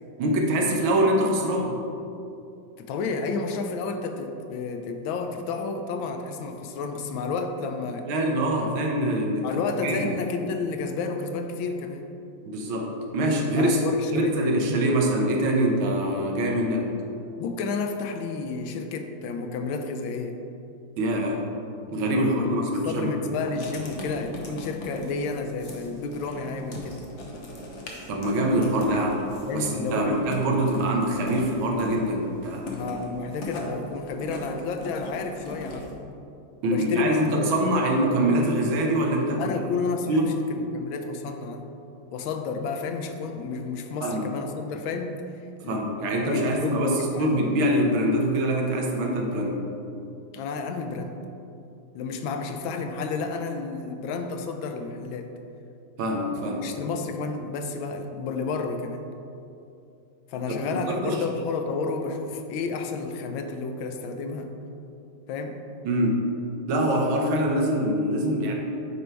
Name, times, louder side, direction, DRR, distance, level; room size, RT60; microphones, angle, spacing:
voice 1, 0.2-1.8 8.1-9.5 9.8-10.1 12.5-13.8 14.1-16.9 21.0-21.4 21.9-23.2 28.1-29.2 29.5-32.7 36.6-39.4 40.1-40.3 44.0-44.3 45.7-49.7 56.0-56.7 60.5-60.6 60.9-61.2 65.9-66.3 66.7-68.5, right 1 dB, 85° right, 1 dB, 1.7 m, -24 dB
voice 2, 2.8-8.1 9.4-12.1 13.6-14.5 17.4-20.4 22.1-27.1 29.5-30.4 32.7-36.0 36.6-37.5 39.4-41.7 42.1-45.2 45.6-45.9 46.2-47.4 50.3-51.2 51.9-55.3 56.6-59.0 60.3-64.5 65.3-65.6, left 4 dB, 80° left, 6 dB, 1.4 m, -31 dB
Writing, 23.4-35.9, left 1 dB, 50° left, 0.9 m, -40 dB
9.2 x 3.3 x 4.5 m, 2.7 s
omnidirectional pair, 2.2 m